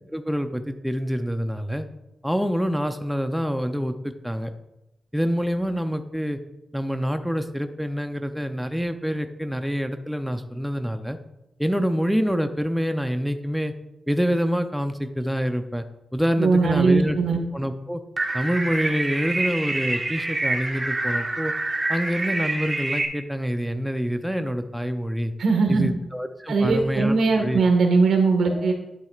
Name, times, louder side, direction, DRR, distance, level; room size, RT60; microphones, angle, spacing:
voice 1, 0.1-1.8 2.2-4.5 5.1-6.4 6.7-11.2 11.6-13.7 14.1-15.8 16.1-17.2 17.5-18.0 18.3-21.5 21.9-25.3 25.7-27.6 28.5-28.7, equal, ahead, 7 dB, 0.5 m, -26 dB
voice 2, 16.4-17.4 25.4-25.9 26.5-28.7, right 4 dB, 75° right, 3 dB, 1.6 m, -20 dB
sound 1, 18.2-23.0, right 2 dB, 30° right, 1.5 m, -27 dB
11.5 x 7.5 x 2.4 m, 0.93 s
cardioid pair, 95°, 0 cm